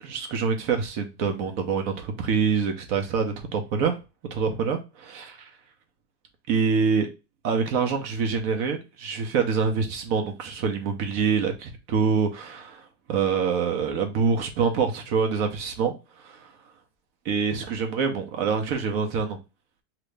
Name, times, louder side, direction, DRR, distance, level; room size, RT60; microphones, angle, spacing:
voice 1, 0.0-4.0 4.3-5.5 6.5-7.1 7.4-16.5 17.2-19.4, right 6 dB, 65° right, 1.0 m, -26 dB
3.1 x 2.9 x 3.2 m
omnidirectional pair, 1.7 m